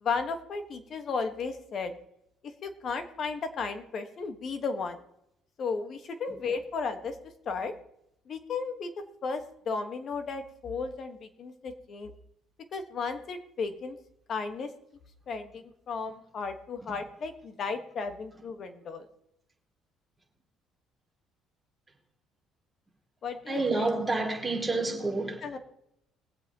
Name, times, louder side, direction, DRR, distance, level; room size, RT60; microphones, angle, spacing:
voice 1, 0.0-1.9 2.4-5.0 5.6-7.2 7.4-7.7 8.3-8.9 9.2-12.1 12.7-14.0 14.3-14.7 15.3-19.1 23.2-23.9 25.4-25.6, left 4 dB, 45° left, 1.4 m, -34 dB
voice 2, 23.5-25.4, right 2 dB, 10° right, 2.6 m, -28 dB
21.5 x 8.0 x 3.0 m
cardioid pair, 130°, 0 cm